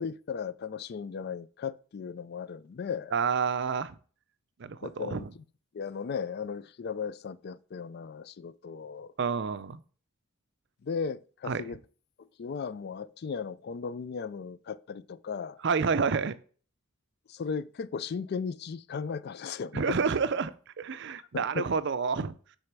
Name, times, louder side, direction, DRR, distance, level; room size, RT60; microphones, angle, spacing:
voice 1, 0.0-3.1 4.8-5.2 5.7-9.1 10.8-11.8 12.4-15.6 17.3-20.0 21.3-21.7, left 6 dB, 50° left, 0.4 m, -36 dB
voice 2, 3.1-3.9 4.6-5.3 9.2-9.8 11.5-11.6 15.6-16.4 19.7-20.5 20.8-22.4, right 5 dB, 60° right, 0.5 m, -29 dB
6.4 x 4.1 x 6.0 m
head